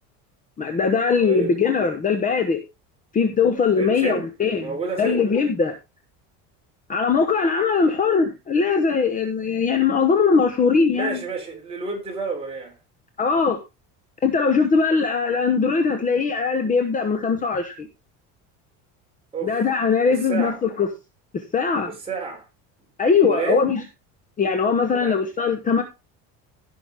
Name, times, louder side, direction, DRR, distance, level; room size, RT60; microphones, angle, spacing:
voice 1, 0.6-2.6 3.1-4.7 5.0-5.7 6.9-11.2 13.2-13.6 14.2-17.9 19.4-20.9 21.3-21.9 23.0-23.8 24.4-25.8, left 5 dB, 20° left, 1.0 m, -20 dB
voice 2, 1.2-1.6 3.8-4.3 4.6-5.2 10.9-12.7 19.3-19.6 20.1-20.6 21.9-22.5 23.3-23.6 24.9-25.2, right 4 dB, 15° right, 3.7 m, -29 dB
16.0 x 6.0 x 3.5 m
cardioid pair, 165°, 35 cm